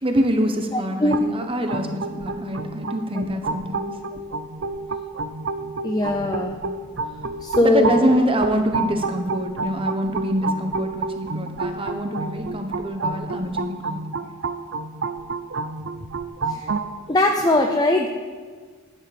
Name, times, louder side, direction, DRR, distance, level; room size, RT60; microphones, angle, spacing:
voice 1, 0.0-3.9 7.6-14.0, equal, 25° right, 5 dB, 1.2 m, -25 dB
voice 2, 0.7-1.2 5.8-6.6 7.4-7.9 16.5-16.6 17.1-18.1, left 2 dB, 20° left, 3 dB, 0.7 m, -20 dB
sound 1, 1.1-16.9, right 3 dB, 65° right, 0.6 m, -30 dB
13.5 x 9.5 x 4.3 m, 1.5 s
head